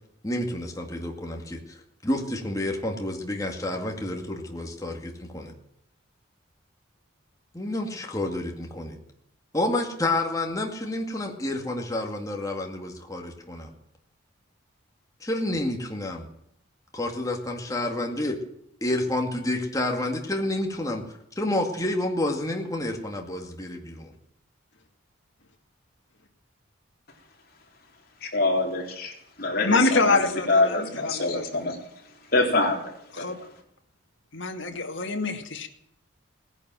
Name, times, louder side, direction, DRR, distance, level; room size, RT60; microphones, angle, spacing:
voice 1, 0.2-5.5 7.5-9.0 9.5-13.7 15.2-16.3 17.0-18.4 18.8-24.1, left 1 dB, 15° left, 2 dB, 2.1 m, -29 dB
voice 2, 28.2-29.1 29.4-31.8 32.3-33.3, left 2 dB, 45° left, 0 dB, 3.7 m, -25 dB
voice 3, 29.6-31.6 33.2-33.4 34.3-35.7, left 3 dB, 60° left, 3 dB, 2.2 m, -25 dB
18.0 x 10.5 x 7.6 m, 0.75 s
head